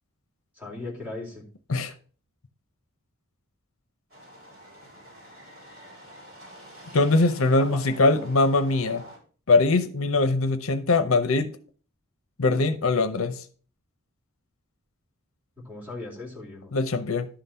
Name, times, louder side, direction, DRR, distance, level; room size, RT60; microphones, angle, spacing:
voice 1, 0.6-1.4 7.6-7.8 15.6-16.7, left 2 dB, 10° right, 2.6 m, -38 dB
sound 1, 4.1-9.2, equal, 45° right, 5.0 m, -47 dB
voice 2, 6.9-9.0 9.5-11.5 12.4-13.4 16.7-17.3, left 3 dB, 70° left, 0.7 m, -22 dB
11.5 x 3.9 x 5.6 m
head